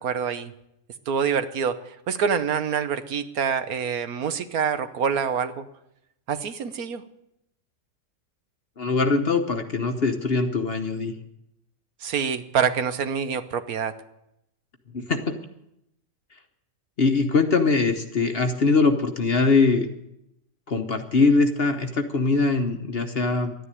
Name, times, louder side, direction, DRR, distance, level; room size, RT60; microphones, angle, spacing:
voice 1, 0.0-0.5 1.1-5.7 6.3-7.0 12.0-13.9, right 7 dB, 65° right, 11 dB, 1.3 m, -26 dB
voice 2, 8.8-11.1 14.9-15.3 17.0-19.9 20.7-23.5, left 4 dB, 40° left, 6 dB, 1.1 m, -22 dB
12.5 x 10.0 x 9.8 m, 0.82 s
omnidirectional pair, 1.7 m